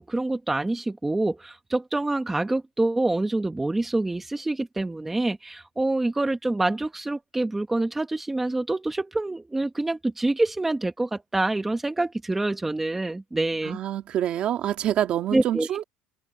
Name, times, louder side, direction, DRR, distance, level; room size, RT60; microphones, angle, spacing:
voice 1, 0.0-13.8 15.3-15.7, right 2 dB, 10° right, 1.2 m, -26 dB
voice 2, 13.6-15.8, right 11 dB, 40° right, 1.9 m, -26 dB
open air
cardioid pair, 155°, 3 cm